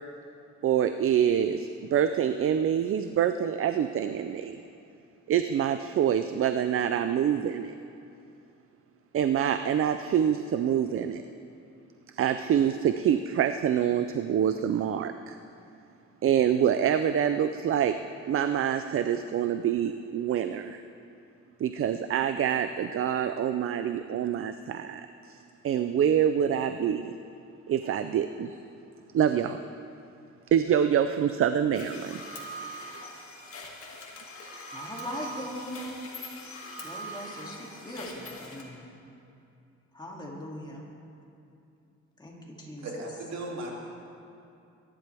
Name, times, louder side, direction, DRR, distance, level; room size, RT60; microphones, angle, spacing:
voice 1, 0.6-4.6 5.3-7.8 9.1-11.2 12.1-15.4 16.2-18.0 18.3-20.8 21.6-25.0 25.3-25.4 25.6-27.1 27.7-28.6 29.1-29.6 30.5-32.2, right 9 dB, 50° right, 9 dB, 0.5 m, -26 dB
sound 1, 31.7-38.6, equal, 50° left, 2.3 m, -42 dB
voice 2, 34.7-36.1 36.8-38.9 39.9-40.8 42.2-43.0, equal, 15° left, -2 dB, 2.6 m, -40 dB
voice 3, 42.8-43.8, right 1 dB, 65° right, -2 dB, 2.8 m, -36 dB
23.5 x 11.0 x 3.5 m, 2.6 s
cardioid pair, 115°, 29 cm